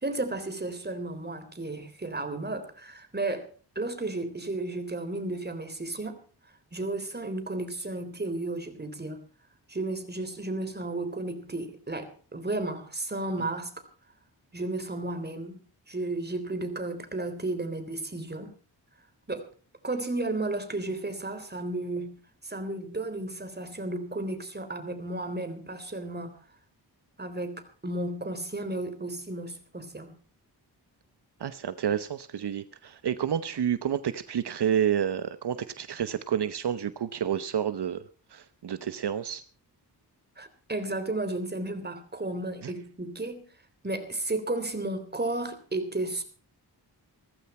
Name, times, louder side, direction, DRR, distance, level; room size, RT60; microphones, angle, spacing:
voice 1, 0.0-3.5 3.8-6.2 6.7-9.2 9.7-13.7 14.5-15.6 15.9-18.5 19.3-19.5 19.8-22.2 22.4-26.4 27.2-30.1 40.4-43.5 43.8-46.2, right 2 dB, 25° right, 8 dB, 3.5 m, -33 dB
voice 2, 31.4-38.0 38.3-39.4 42.6-42.7, right 9 dB, 75° right, 12 dB, 1.0 m, -29 dB
17.0 x 14.5 x 4.3 m, 0.39 s
wide cardioid pair, 100°, 41 cm